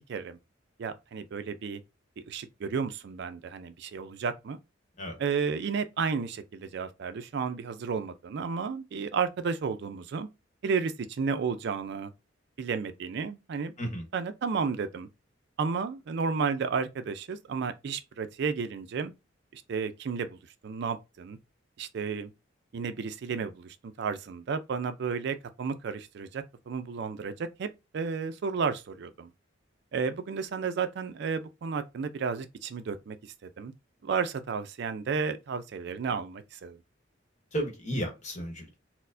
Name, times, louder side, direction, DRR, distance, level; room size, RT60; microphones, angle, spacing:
voice 1, 0.8-1.8 2.3-4.6 5.2-10.3 10.6-12.1 12.6-13.7 14.1-15.1 15.6-19.1 19.5-20.4 20.6-21.4 21.8-22.3 22.7-27.7 27.9-29.3 29.9-33.7 34.0-36.8, right 5 dB, 60° right, 0.4 m, -32 dB
voice 2, 37.5-38.8, equal, 40° left, 1.0 m, -33 dB
4.3 x 2.0 x 2.6 m
head